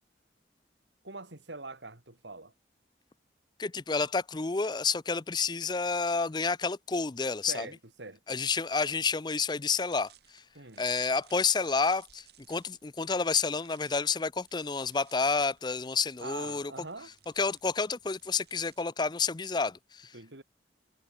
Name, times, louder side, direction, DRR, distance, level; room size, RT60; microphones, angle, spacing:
voice 1, 1.0-2.5 7.5-8.4 10.5-10.8 16.2-17.1 20.1-20.4, right 3 dB, 75° right, 3.6 m, -44 dB
voice 2, 3.6-7.7 8.3-10.4 10.8-16.7 17.4-20.1, left 4 dB, 25° left, 0.5 m, -30 dB
sound 1, 9.9-18.9, right 10 dB, 60° right, 4.5 m, -60 dB
head